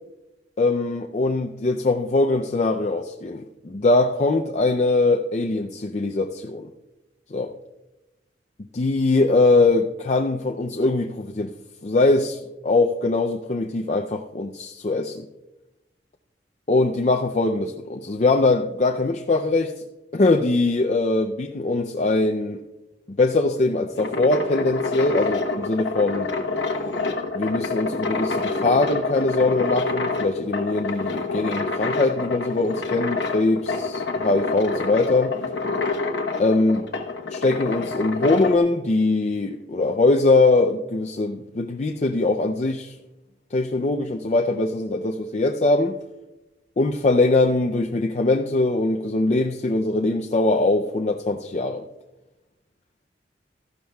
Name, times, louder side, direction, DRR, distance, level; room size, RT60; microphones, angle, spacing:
voice 1, 0.6-6.7 7.3-7.5 8.7-11.5 11.8-15.3 16.7-19.8 20.1-22.6 23.1-26.3 27.3-33.9 34.2-35.3 36.4-36.9 37.3-42.9 43.5-46.0 46.8-51.8, left 2 dB, 40° left, 0.4 m, -22 dB
sound 1, 23.7-38.6, left 3 dB, 80° left, 1.0 m, -27 dB
14.5 x 12.0 x 2.3 m
head